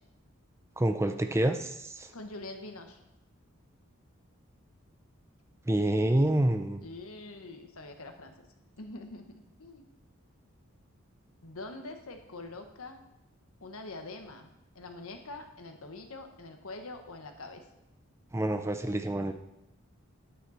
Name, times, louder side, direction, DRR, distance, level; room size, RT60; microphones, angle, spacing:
voice 1, 0.8-2.1 5.7-6.8 18.3-19.3, right 1 dB, 10° right, 8 dB, 0.4 m, -27 dB
voice 2, 2.1-3.0 6.8-8.3 8.8-9.8 11.4-13.0 13.6-14.5 14.7-17.6, left 2 dB, 90° left, 5 dB, 1.3 m, -44 dB
9.7 x 9.2 x 4.2 m, 0.88 s
head